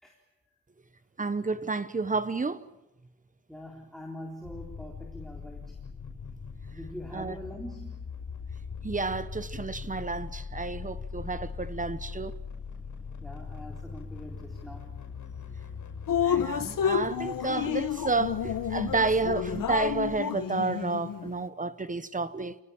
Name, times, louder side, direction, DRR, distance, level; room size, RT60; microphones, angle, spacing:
voice 1, 1.2-2.6 7.1-7.4 8.8-12.3 16.2-22.6, right 3 dB, 25° right, 1.2 m, -30 dB
voice 2, 3.5-5.8 6.7-8.0 13.2-14.9, equal, ahead, 3.8 m, -43 dB
sound 1, 4.4-20.2, left 5 dB, 60° left, 6.3 m, -41 dB
Drip, 16.1-21.3, left 8 dB, 75° left, 1.4 m, -30 dB
28.5 x 20.0 x 8.9 m
wide cardioid pair, 120°, 33 cm